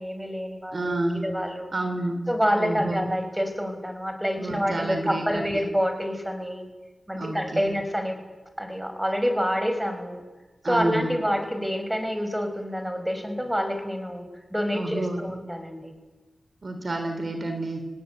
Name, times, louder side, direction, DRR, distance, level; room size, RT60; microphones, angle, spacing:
voice 1, 0.0-1.7 2.3-6.6 7.1-8.2 8.6-10.2 10.6-14.3 14.5-15.9, equal, 5° right, 7 dB, 5.5 m, -27 dB
voice 2, 0.7-1.2 1.7-2.2 2.6-3.0 4.4-5.5 7.2-7.7 10.6-11.1 14.7-15.2 16.6-17.8, right 2 dB, 50° right, 6 dB, 3.4 m, -29 dB
25.5 x 18.5 x 9.6 m, 1.2 s
cardioid pair, 70°, 0 cm